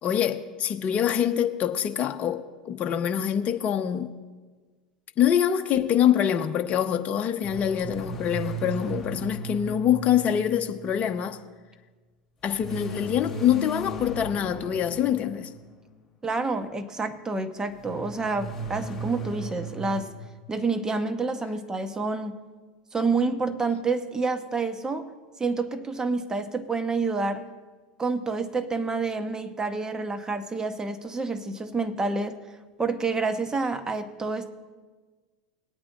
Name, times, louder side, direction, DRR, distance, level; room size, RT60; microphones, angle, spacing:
voice 1, 0.0-4.1 5.2-11.4 12.4-15.5, left 9 dB, 35° left, 0.9 m, -25 dB
sound 1, 7.4-11.0 12.6-15.7 17.8-20.0, right 2 dB, 5° left, 3.2 m, -36 dB
voice 2, 16.2-20.1 20.5-22.4 22.9-25.1 25.4-27.5 28.0-32.4 32.8-34.5, right 3 dB, 15° right, 1.0 m, -28 dB
20.0 x 8.7 x 2.5 m
hypercardioid pair, 90°, 4 cm